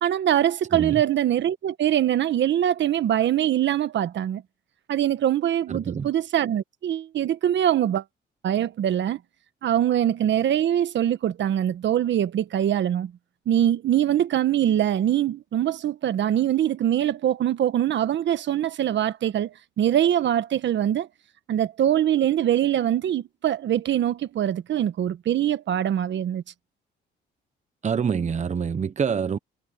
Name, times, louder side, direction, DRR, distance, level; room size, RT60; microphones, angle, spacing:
voice 1, 0.0-4.4 4.9-8.0 8.4-9.2 9.6-13.1 13.5-21.1 21.5-26.4, right 11 dB, 65° right, 1.3 m, -23 dB
voice 2, 5.7-6.1 27.8-29.4, right 6 dB, 35° right, 1.0 m, -26 dB
cardioid pair, 90°, 20 cm